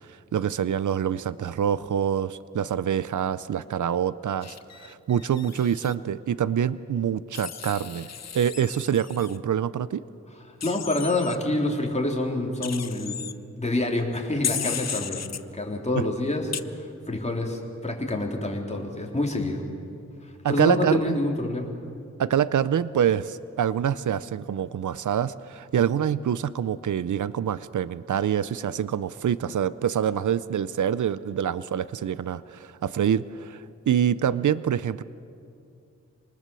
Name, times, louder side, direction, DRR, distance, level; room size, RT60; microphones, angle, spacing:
voice 1, 0.0-10.0 15.9-16.0 20.4-21.2 22.2-35.0, right 9 dB, 90° right, 16 dB, 0.6 m, -26 dB
Wild animals, 4.4-5.9 7.3-9.4 10.6-11.4 12.6-13.3 14.4-15.4 16.5-16.6, left 7 dB, 60° left, 0.7 m, -35 dB
voice 2, 10.6-13.2 13.6-15.3 15.5-19.6 20.2-21.7, left 2 dB, 25° left, 0 dB, 3.3 m, -27 dB
26.0 x 20.0 x 6.9 m, 2.5 s
wide cardioid pair, 65°, 29 cm